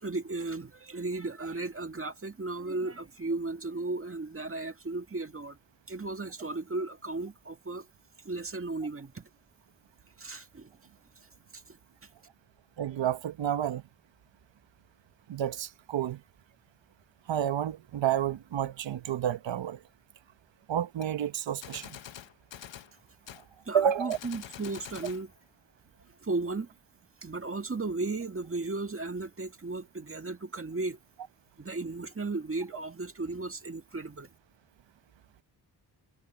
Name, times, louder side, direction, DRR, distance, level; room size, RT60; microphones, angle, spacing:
voice 1, 0.0-5.6 5.9-7.9 8.3-9.3 10.2-10.7 11.5-11.8 23.7-25.3 26.2-26.7 27.2-31.0 31.6-34.3, right 3 dB, 30° right, 1.9 m, -35 dB
voice 2, 12.8-13.8 15.3-16.2 17.3-19.8 20.7-21.9 23.7-24.2, right 10 dB, 80° right, 1.0 m, -30 dB
Gunshot gunfire, 21.0-21.1 21.6-22.9 23.3-23.5 24.1-25.2, left 10 dB, 80° left, 1.1 m, -45 dB
cardioid pair, 75°, 44 cm